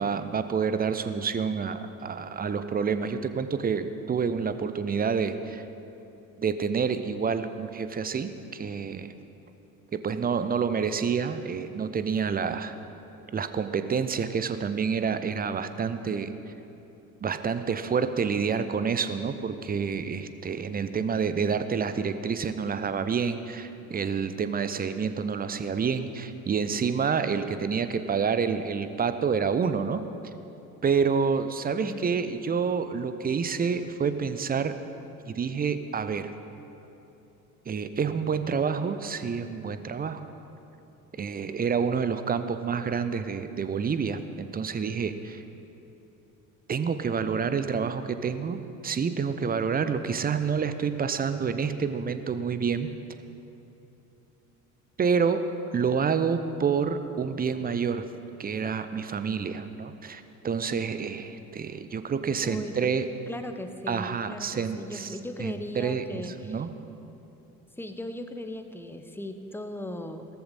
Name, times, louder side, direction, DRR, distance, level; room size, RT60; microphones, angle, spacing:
voice 1, 0.0-5.6 6.4-9.1 9.9-12.7 13.3-16.3 17.2-30.0 30.8-34.7 35.3-36.3 37.7-40.2 41.2-45.4 46.7-52.9 55.0-58.1 58.4-63.1 63.9-66.7, right 6 dB, 20° right, 11 dB, 0.7 m, -28 dB
voice 2, 31.8-32.1 62.4-62.8 63.3-66.6 67.8-70.3, left 1 dB, 5° left, 7 dB, 0.9 m, -38 dB
17.5 x 13.5 x 4.2 m, 3.0 s
figure-of-eight pair, 55°, 43 cm